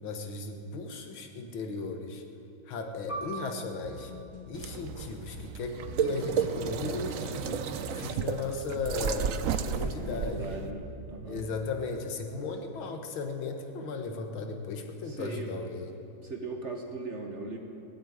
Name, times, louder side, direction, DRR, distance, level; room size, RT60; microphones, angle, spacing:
voice 1, 0.0-2.2 2.7-4.1 4.5-7.6 7.9-9.4 9.7-10.6 11.3-15.9, left 4 dB, 80° left, 5 dB, 2.1 m, -36 dB
Piano, 3.1-8.1 8.5-8.6 9.4-9.8, right 3 dB, 15° left, 1.6 m, -45 dB
sound 1, 3.8-11.9, left 1 dB, 45° left, 1.8 m, -46 dB
sound 2, 4.5-10.7, right 7 dB, 75° right, 0.7 m, -33 dB
voice 2, 10.0-11.4 15.0-15.5 16.2-17.6, right 3 dB, 40° right, 2 dB, 1.2 m, -39 dB
17.0 x 8.5 x 9.4 m, 2.6 s
omnidirectional pair, 2.2 m